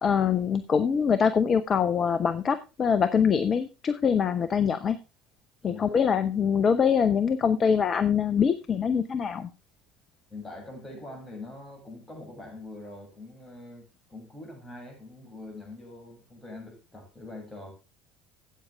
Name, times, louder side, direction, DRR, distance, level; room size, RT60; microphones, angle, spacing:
voice 1, 0.0-5.0 5.6-9.5, left 7 dB, 35° left, 12 dB, 0.8 m, -24 dB
voice 2, 5.6-5.9 10.3-17.7, left 2 dB, 15° left, 1 dB, 7.1 m, -43 dB
13.0 x 8.8 x 3.4 m, 0.29 s
figure-of-eight pair, 65°, 0 cm